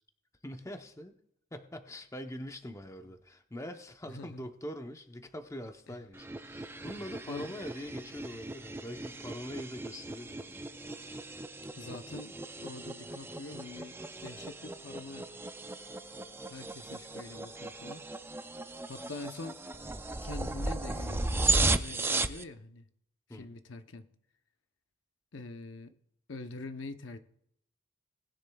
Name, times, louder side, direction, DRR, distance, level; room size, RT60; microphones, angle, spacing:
voice 1, 0.4-1.1 1.5-10.6 23.3-23.5, equal, 15° left, 6 dB, 0.8 m, -43 dB
voice 2, 4.1-4.5 7.3-7.6 11.0-11.2 11.8-15.3 16.5-18.0 18.9-19.6 20.2-22.9 23.3-24.1 25.3-26.0 26.3-27.2, left 3 dB, 70° left, 8 dB, 0.8 m, -45 dB
sound 1, 6.1-22.4, right 2 dB, 10° right, 0.4 m, -36 dB
19.5 x 10.0 x 2.3 m, 0.71 s
head